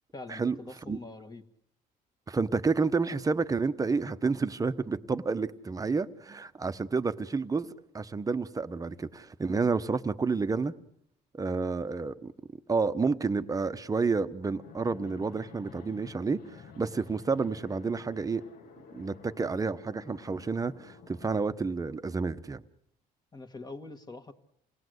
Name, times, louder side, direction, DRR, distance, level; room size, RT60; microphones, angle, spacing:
voice 1, 0.1-1.4 23.3-24.3, left 2 dB, 25° left, 8 dB, 1.8 m, -44 dB
voice 2, 2.3-10.7 11.3-12.3 12.7-18.4 18.9-22.6, right 4 dB, 20° right, 11 dB, 1.0 m, -30 dB
Fixed-wing aircraft airplane, 14.4-21.5, left 6 dB, 65° left, 1.9 m, -52 dB
28.0 x 18.5 x 8.0 m, 0.72 s
cardioid pair, 110°, 17 cm